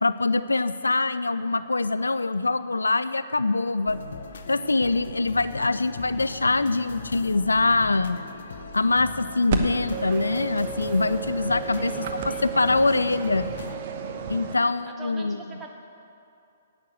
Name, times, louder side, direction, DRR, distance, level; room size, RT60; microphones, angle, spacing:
voice 1, 0.0-4.0 4.5-8.2 8.7-11.9 12.2-13.5 14.3-15.4, left 3 dB, 75° left, 14 dB, 0.4 m, -24 dB
sound 1, 3.9-13.8, left 4 dB, 60° left, 0.9 m, -39 dB
sound 2, 9.5-14.6, right 6 dB, 45° right, 1.0 m, -32 dB
voice 2, 11.8-12.6 14.5-15.7, right 2 dB, 15° right, 1 dB, 1.5 m, -44 dB
11.0 x 8.6 x 7.7 m, 2.6 s
figure-of-eight pair, 120°, 0 cm